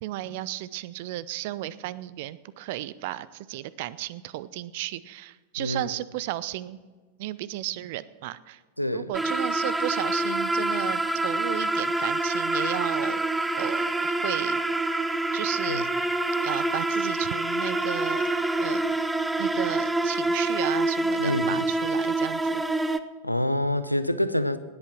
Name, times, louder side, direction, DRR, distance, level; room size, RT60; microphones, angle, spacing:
voice 1, 0.0-6.8 7.2-8.6 8.9-14.6 15.3-15.9 16.4-18.2 18.6-18.9 19.4-22.6, right 15 dB, 50° right, 18 dB, 0.6 m, -34 dB
voice 2, 8.8-9.1 15.7-15.8 21.2-21.5 23.2-24.6, left 1 dB, 90° left, 13 dB, 0.7 m, -26 dB
sound 1, 9.1-23.0, right 2 dB, 10° right, 0.7 m, -26 dB
19.0 x 8.4 x 6.0 m, 1.4 s
figure-of-eight pair, 90°, 0 cm